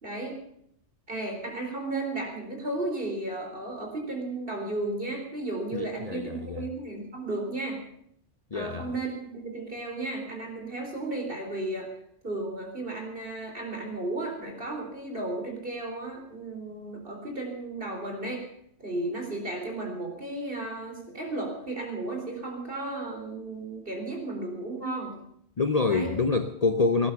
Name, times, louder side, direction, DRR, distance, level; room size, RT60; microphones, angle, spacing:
voice 1, 0.0-0.4 1.1-7.8 8.5-11.9 12.2-18.4 18.8-25.2 25.9-26.1, right 2 dB, 45° right, 4.2 m, -34 dB
voice 2, 5.7-6.6 8.5-8.9 25.6-27.1, left 4 dB, 35° left, 0.8 m, -26 dB
18.5 x 11.0 x 7.0 m
omnidirectional pair, 1.3 m